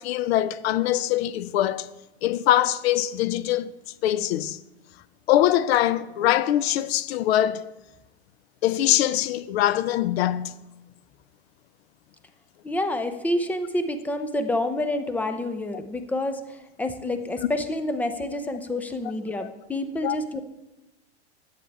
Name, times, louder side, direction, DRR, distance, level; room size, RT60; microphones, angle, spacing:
voice 1, 0.0-1.9 2.2-3.7 4.0-4.6 5.3-7.7 8.6-10.6 19.4-19.5 20.0-20.2, left 13 dB, 65° left, 0.5 m, -23 dB
voice 2, 12.6-20.4, left 1 dB, 5° left, 0.4 m, -28 dB
11.0 x 7.9 x 3.4 m
hypercardioid pair, 130°, 34 cm